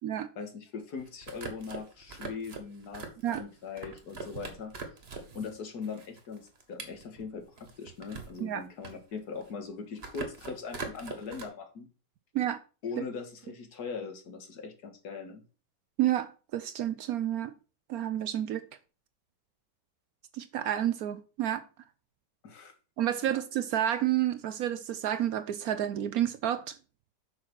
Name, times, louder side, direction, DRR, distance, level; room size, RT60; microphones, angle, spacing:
voice 1, 0.4-4.7 5.3-11.9 12.8-15.4 22.4-22.7, left 5 dB, 60° left, 2.0 m, -40 dB
sound 1, 1.0-5.5 5.8-8.4 8.7-9.6 10.0-11.4, right 4 dB, 35° right, 1.6 m, -42 dB
voice 2, 16.0-17.5 17.9-18.7 20.3-21.6 23.0-26.7, right 11 dB, 70° right, 0.9 m, -30 dB
6.5 x 5.9 x 6.0 m
omnidirectional pair, 1.9 m